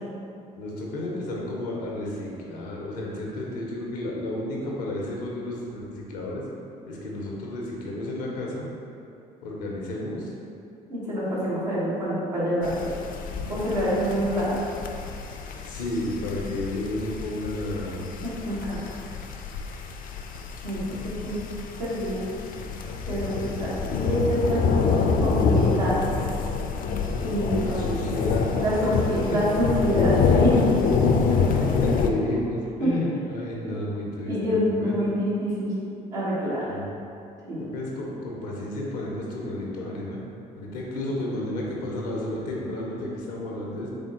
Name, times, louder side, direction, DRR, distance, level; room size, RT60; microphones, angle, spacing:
voice 1, 0.5-6.4 6.9-8.7 9.4-10.3 15.6-18.1 27.4-28.5 28.8-28.9 29.3-29.4 31.3-35.1 36.7-37.0 37.6-40.2 40.6-43.9, left 1 dB, 85° left, -3 dB, 0.7 m, -32 dB
voice 2, 10.9-12.7 13.5-14.6 18.2-18.8 20.6-21.4 21.8-22.2 23.0-24.8 25.2-25.9 27.2-27.9 28.6-30.8 31.3-31.4 33.7-33.8 34.2-35.7 36.1-36.6 37.5-37.6, equal, 90° right, -9 dB, 1.0 m, -26 dB
sound 1, 12.6-32.1, left 5 dB, 45° left, 0.4 m, -26 dB
3.6 x 3.5 x 2.9 m, 2.7 s
hypercardioid pair, 50°, 20 cm